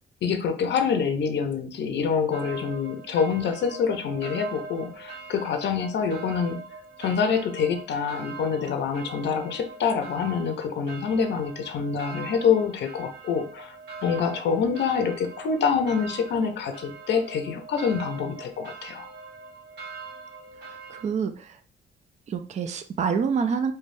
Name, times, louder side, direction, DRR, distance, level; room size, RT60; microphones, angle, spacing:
voice 1, 0.2-6.6 7.0-13.8 14.0-19.1, left 6 dB, 65° left, 7 dB, 0.6 m, -26 dB
sound 1, 2.3-21.0, right 4 dB, 60° right, 1.2 m, -42 dB
voice 2, 20.9-21.6 22.3-23.7, right 6 dB, 35° right, 8 dB, 0.4 m, -27 dB
3.2 x 2.2 x 2.5 m, 0.40 s
cardioid pair, 90°, 20 cm